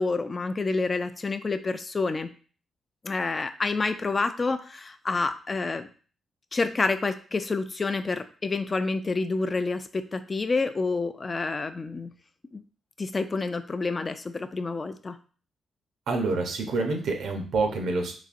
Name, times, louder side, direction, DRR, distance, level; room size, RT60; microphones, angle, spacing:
voice 1, 0.0-2.3 3.0-5.9 6.5-12.1 12.5-12.6 13.0-15.2, left 3 dB, 35° left, 10 dB, 0.3 m, -28 dB
voice 2, 16.1-18.2, right 3 dB, 80° right, 4 dB, 0.7 m, -27 dB
4.0 x 2.7 x 2.5 m, 0.40 s
cardioid pair, 75°, 0 cm